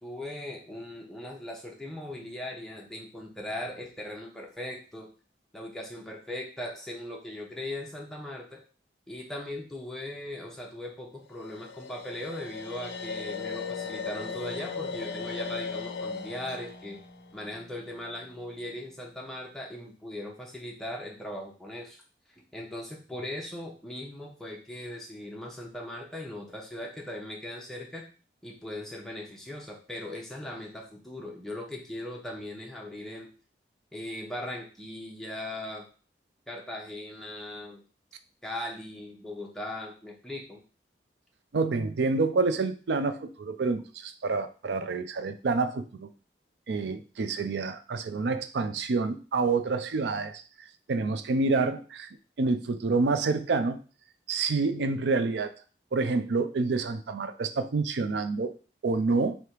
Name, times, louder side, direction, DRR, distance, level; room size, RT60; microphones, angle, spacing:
voice 1, 0.0-5.1 5.5-8.6 9.1-17.0 17.3-22.0 22.3-28.0 28.4-33.3 33.9-35.8 36.5-37.8 38.4-40.6, left 1 dB, ahead, -2 dB, 0.7 m, -39 dB
sound 1, 11.3-18.5, left 5 dB, 75° left, 0.4 m, -38 dB
voice 2, 41.5-46.1 46.7-50.4 50.9-52.1 52.4-53.8 54.3-55.5 55.9-58.5 58.8-59.4, right 3 dB, 80° right, 11 dB, 0.4 m, -28 dB
3.3 x 2.8 x 4.4 m, 0.37 s
head